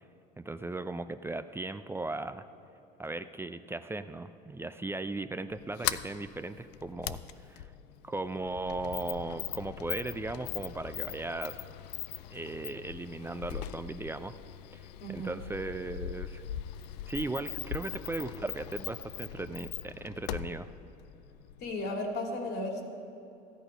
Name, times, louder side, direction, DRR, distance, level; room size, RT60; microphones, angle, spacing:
voice 1, 0.4-2.5 3.0-7.7 8.0-11.6 12.3-14.3 14.7-16.4 17.1-20.7, right 2 dB, 10° right, 11 dB, 0.4 m, -37 dB
Sliding door, 5.5-21.9, left 12 dB, 85° left, 0.4 m, -40 dB
voice 2, 15.0-15.4 21.6-22.8, left 1 dB, 55° left, 2 dB, 2.2 m, -35 dB
13.5 x 10.5 x 5.0 m, 2.8 s
hypercardioid pair, 80°, 20 cm